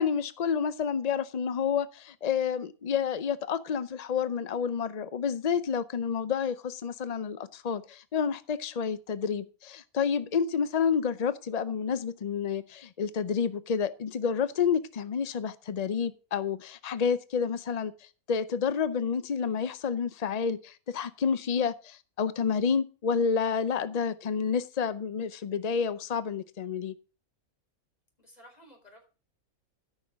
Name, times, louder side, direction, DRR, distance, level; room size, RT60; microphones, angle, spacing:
voice 1, 0.0-26.9, left 6 dB, 65° left, 0.4 m, -29 dB
voice 2, 28.2-29.1, equal, 25° left, 4.4 m, -54 dB
13.5 x 6.3 x 6.0 m
omnidirectional pair, 1.5 m